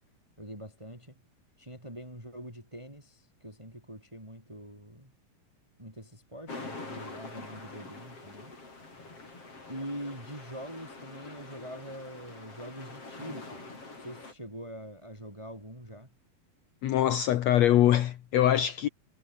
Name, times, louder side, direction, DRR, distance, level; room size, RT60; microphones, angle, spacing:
voice 1, 0.4-1.1 1.6-5.1 5.8-8.5 9.7-13.7 14.0-16.1, equal, 5° right, 7.9 m, -44 dB
sound 1, 6.5-14.3, left 3 dB, 35° left, 7.8 m, -45 dB
voice 2, 16.8-18.9, left 12 dB, 75° left, 1.6 m, -23 dB
omnidirectional pair, 4.5 m